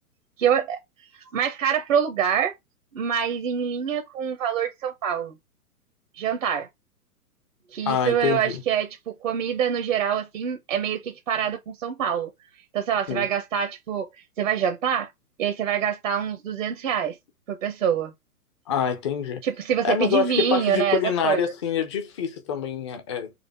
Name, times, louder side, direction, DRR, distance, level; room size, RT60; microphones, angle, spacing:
voice 1, 0.4-0.8 1.3-2.5 2.9-5.4 6.2-6.7 7.7-12.3 12.7-15.1 15.4-17.2 17.5-18.1 19.4-21.4, right 8 dB, 55° right, 1.0 m, -25 dB
voice 2, 7.9-8.6 13.1-13.3 18.7-19.4 19.8-23.3, left 7 dB, 20° left, 0.5 m, -26 dB
4.2 x 2.5 x 4.2 m
figure-of-eight pair, 115°, 46 cm